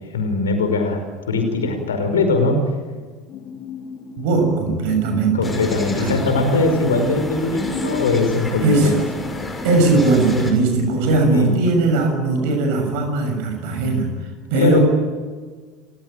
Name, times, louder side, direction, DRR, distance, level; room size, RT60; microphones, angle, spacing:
voice 1, 0.1-1.0 1.3-2.6 5.3-9.0 11.2-11.5 14.6-14.8, left 3 dB, 75° left, 5 dB, 5.2 m, -20 dB
sound 1, 3.3-13.1, left 6 dB, 45° left, 2.5 m, -35 dB
voice 2, 4.2-5.5 6.0-6.1 8.6-8.9 9.6-14.2 14.5-14.8, right 3 dB, 55° right, 6 dB, 6.6 m, -19 dB
sound 2, 5.4-10.5, left 1 dB, 15° left, 5.9 m, -31 dB
30.0 x 16.5 x 9.2 m, 1.5 s
figure-of-eight pair, 70°, 0 cm